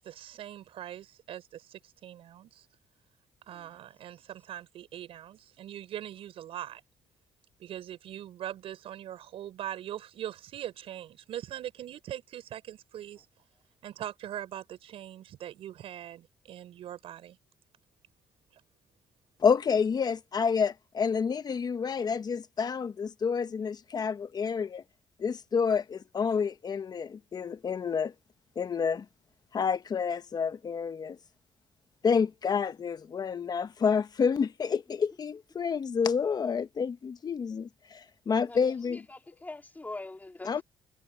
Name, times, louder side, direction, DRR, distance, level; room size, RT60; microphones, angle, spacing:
voice 1, 0.0-2.6 3.5-6.8 7.6-13.3 13.8-17.4, right 11 dB, 75° right, 5.8 m, -41 dB
voice 2, 19.4-24.8 25.2-28.1 28.6-29.0 29.5-31.2 32.0-39.0 40.4-40.6, left 6 dB, 45° left, 1.1 m, -29 dB
voice 3, 38.9-40.6, left 2 dB, 15° left, 3.2 m, -43 dB
cardioid pair, 90°, 10 cm